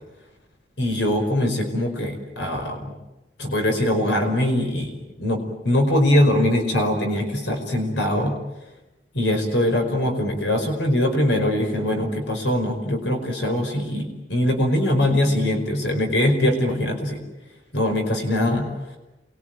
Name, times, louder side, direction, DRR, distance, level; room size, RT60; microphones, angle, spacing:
voice 1, 0.8-2.9 3.4-5.4 5.6-8.4 9.1-17.2 17.7-18.7, left 1 dB, 80° left, 4 dB, 5.1 m, -22 dB
29.0 x 22.5 x 9.2 m, 0.99 s
head